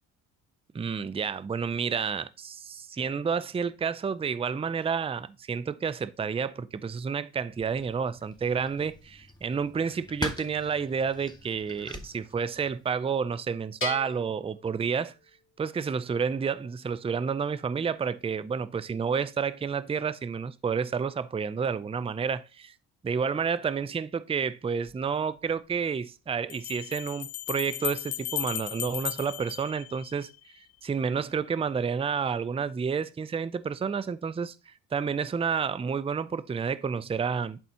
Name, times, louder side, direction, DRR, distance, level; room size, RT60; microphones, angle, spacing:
voice 1, 0.7-15.1 15.6-22.7 23.0-30.3 30.8-37.6, right 6 dB, 15° right, 0.4 m, -30 dB
sound 1, 7.5-12.9, left 1 dB, 10° left, 1.3 m, -42 dB
Bell, 13.8-15.5, left 4 dB, 25° left, 2.5 m, -39 dB
Bell 2, 24.9-25.0 26.5-30.4, left 16 dB, 60° left, 0.6 m, -36 dB
11.0 x 4.1 x 2.9 m
supercardioid pair, 55°, 45 cm